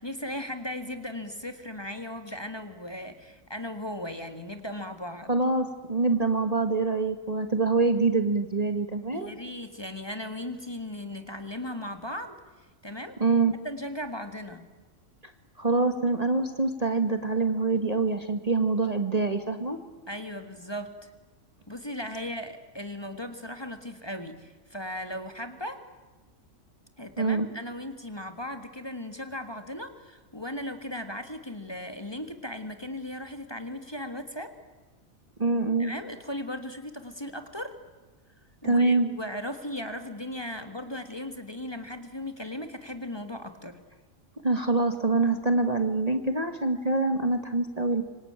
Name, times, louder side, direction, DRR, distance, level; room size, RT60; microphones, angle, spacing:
voice 1, 0.0-5.3 9.1-13.2 13.6-14.6 20.1-21.1 21.7-25.9 27.0-34.5 35.8-37.8 38.6-43.8, left 1 dB, 20° left, 7 dB, 1.7 m, -37 dB
voice 2, 5.3-9.3 13.2-13.5 15.6-19.8 27.2-27.5 35.4-35.9 38.6-39.1 44.4-48.0, right 3 dB, 30° right, 7 dB, 1.5 m, -25 dB
26.0 x 25.0 x 8.9 m, 1.3 s
omnidirectional pair, 1.4 m